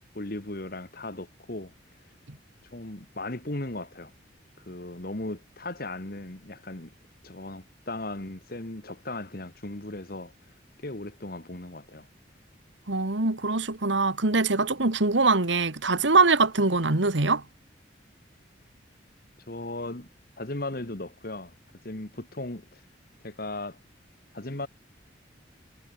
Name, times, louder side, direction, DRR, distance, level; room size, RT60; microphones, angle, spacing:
voice 1, 0.2-1.7 2.6-4.1 4.6-6.9 7.2-10.3 10.8-12.1 19.5-20.1 20.4-21.5 21.8-22.8 23.2-23.8 24.3-24.7, left 2 dB, 50° left, 1.9 m, -37 dB
voice 2, 12.9-17.4, right 3 dB, 80° right, 1.9 m, -23 dB
head